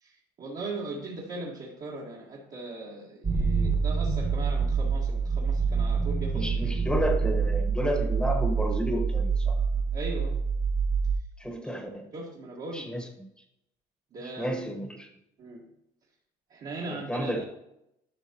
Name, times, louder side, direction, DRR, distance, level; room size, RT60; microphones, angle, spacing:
voice 1, 0.0-6.5 9.6-10.4 11.6-11.7 12.1-13.0 14.1-14.5 15.4-15.7 16.5-17.4, right 2 dB, 50° right, -5 dB, 1.6 m, -39 dB
sound 1, 3.2-11.2, right 5 dB, 30° right, 1.4 m, -26 dB
voice 2, 6.3-9.6 11.4-12.1 12.7-13.3 14.4-15.1 16.8-17.4, equal, 5° left, 4 dB, 1.2 m, -31 dB
11.5 x 5.8 x 2.9 m, 0.82 s
cardioid pair, 110°, 17 cm